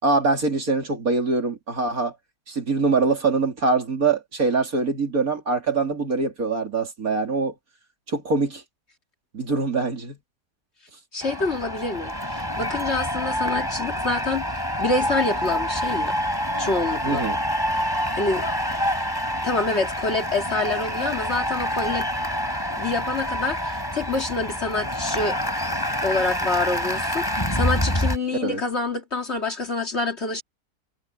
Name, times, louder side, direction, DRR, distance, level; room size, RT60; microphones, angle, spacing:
voice 1, 0.0-2.1 2.5-7.5 8.1-8.6 9.3-10.2 17.0-17.4 28.4-28.6, right 4 dB, 55° right, 3.4 m, -23 dB
voice 2, 11.1-16.1 16.6-17.2 17.8-18.5 19.4-22.1 22.7-25.4 26.0-27.3 27.5-30.4, left 3 dB, 40° left, 2.2 m, -27 dB
sound 1, 11.2-28.2, equal, 10° left, 6.3 m, -27 dB
omnidirectional pair, 1.8 m